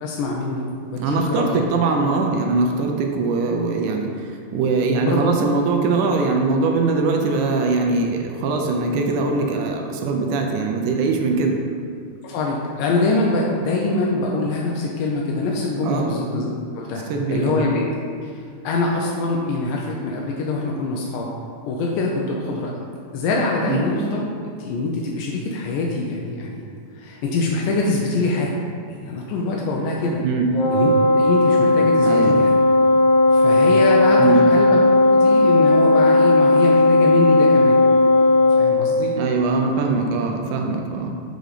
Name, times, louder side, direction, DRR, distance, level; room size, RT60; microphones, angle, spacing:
voice 1, 0.0-1.6 5.0-5.2 12.2-17.8 18.2-21.3 21.7-22.8 23.1-24.2 24.5-26.6 26.9-28.5 28.9-30.2 30.7-30.9 31.2-32.5 33.3-34.8 35.1-37.8 38.2-39.1, left 3 dB, 85° left, -2 dB, 2.3 m, -24 dB
voice 2, 1.0-11.6 15.8-16.1 17.1-17.7 23.7-23.8 30.2-30.5 32.0-32.4 34.2-34.4 39.2-41.3, right 4 dB, 80° right, 2 dB, 2.0 m, -22 dB
Wind instrument woodwind instrument, 30.5-38.7, left 2 dB, 65° left, 2.0 m, -15 dB
7.7 x 3.9 x 4.9 m, 2.3 s
omnidirectional pair, 3.8 m